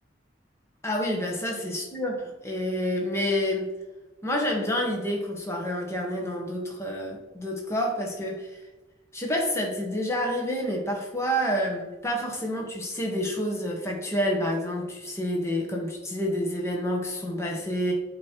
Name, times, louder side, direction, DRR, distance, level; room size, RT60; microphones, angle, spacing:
voice 1, 0.8-3.7 4.2-8.5 9.1-17.9, equal, 15° left, 0 dB, 1.2 m, -28 dB
8.3 x 3.1 x 4.4 m, 1.1 s
head